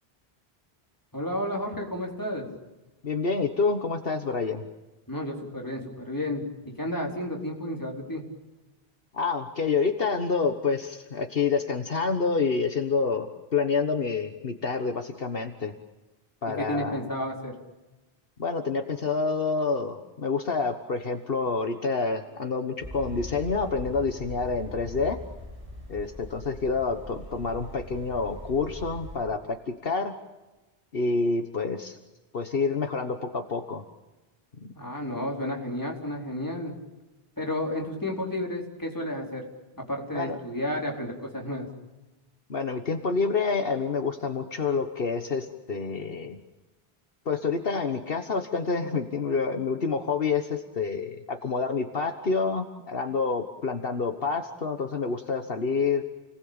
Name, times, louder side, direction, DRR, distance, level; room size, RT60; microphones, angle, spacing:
voice 1, 1.1-2.5 5.1-8.2 16.5-17.5 34.7-36.7 37.4-39.4 39.8-41.7, left 1 dB, 20° left, 0 dB, 4.3 m, -32 dB
voice 2, 3.0-4.7 9.1-15.7 16.4-17.0 18.4-25.2 25.9-30.1 30.9-32.0 32.3-33.8 34.6-34.7 40.1-40.4 42.5-46.4 47.2-56.0, left 4 dB, 65° left, 6 dB, 1.6 m, -28 dB
sound 1, 22.8-29.2, equal, 30° right, 7.3 m, -41 dB
30.0 x 19.0 x 8.8 m, 1.1 s
omnidirectional pair, 1.1 m